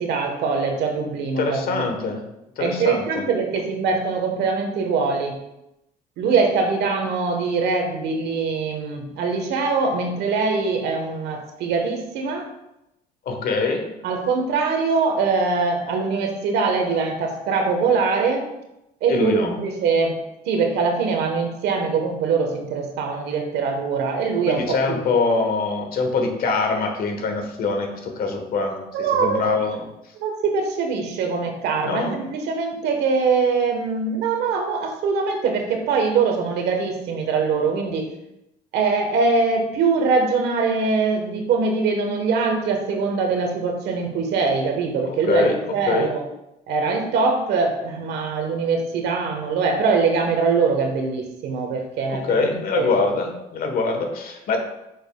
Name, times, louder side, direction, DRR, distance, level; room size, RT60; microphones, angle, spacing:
voice 1, 0.0-1.9 2.6-5.4 6.2-12.4 14.0-18.4 19.0-20.1 20.4-24.6 28.9-29.5 30.2-38.1 38.7-46.2 46.7-52.9, right 4 dB, 80° right, 4 dB, 1.3 m, -22 dB
voice 2, 1.4-2.2 2.6-3.2 13.2-13.9 19.1-19.6 24.5-28.8 29.2-29.8 31.8-32.2 45.3-45.6 45.9-46.1 52.1-54.6, left 3 dB, 60° left, 4 dB, 1.4 m, -23 dB
8.2 x 6.5 x 2.4 m, 0.88 s
cardioid pair, 110°, 17 cm